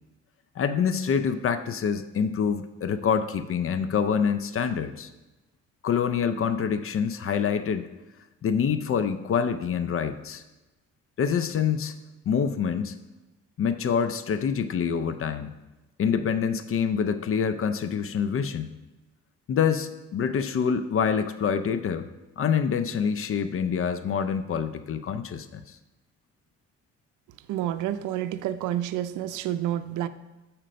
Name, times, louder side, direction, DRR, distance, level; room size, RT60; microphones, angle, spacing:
voice 1, 0.6-5.1 5.8-7.9 8.4-10.4 11.2-11.9 12.3-12.9 13.6-15.5 16.0-18.8 19.5-22.1 22.4-25.8, left 7 dB, 45° left, 11 dB, 0.5 m, -26 dB
voice 2, 27.5-30.1, right 12 dB, 85° right, 13 dB, 0.5 m, -29 dB
7.6 x 4.4 x 5.1 m, 1.1 s
cardioid pair, 90°, 30 cm